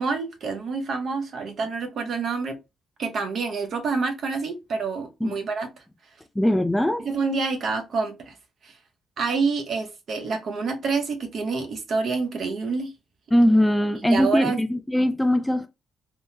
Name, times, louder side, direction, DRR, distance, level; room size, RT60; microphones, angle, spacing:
voice 1, 0.0-2.6 3.0-5.7 7.0-8.3 8.6-8.7 9.2-12.9 14.1-14.6, right 4 dB, 60° right, 0.7 m, -27 dB
voice 2, 6.4-7.1 13.3-15.7, equal, 10° left, 0.3 m, -21 dB
3.4 x 2.0 x 2.7 m
cardioid pair, 90°, 0 cm